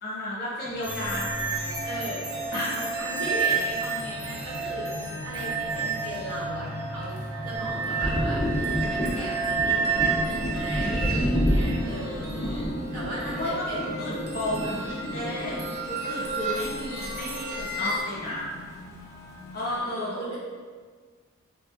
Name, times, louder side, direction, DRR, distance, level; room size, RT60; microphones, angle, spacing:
voice 1, 0.0-1.9 2.5-2.7 11.8-12.7 13.4-18.5 19.5-20.3, left 1 dB, 45° left, -7 dB, 1.0 m, -33 dB
sound 1, 0.6-19.7, left 1 dB, 70° left, 0.6 m, -43 dB
sound 2, 0.8-18.0, right 4 dB, 45° right, 0.5 m, -31 dB
voice 2, 1.8-7.2 7.4-12.2 12.9-14.1 19.7-20.4, right 1 dB, 85° right, -9 dB, 1.2 m, -37 dB
Thunder, 7.6-17.3 17.6-18.8, equal, 15° left, 0.4 m, -30 dB
3.3 x 2.4 x 2.3 m, 1.5 s
head